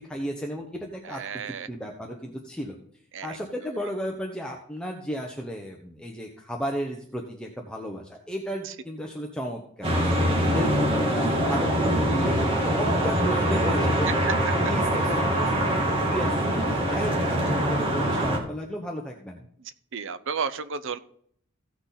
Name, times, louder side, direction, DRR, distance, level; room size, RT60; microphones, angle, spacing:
voice 1, 0.0-2.7 3.2-14.3 14.6-15.5 16.0-19.4, equal, 5° left, 0 dB, 1.0 m, -34 dB
voice 2, 1.1-1.7 3.1-3.4 19.9-21.0, right 5 dB, 65° right, 13 dB, 0.8 m, -32 dB
sound 1, 9.8-18.4, equal, 25° right, 2.3 m, -24 dB
16.0 x 6.2 x 4.1 m, 0.64 s
head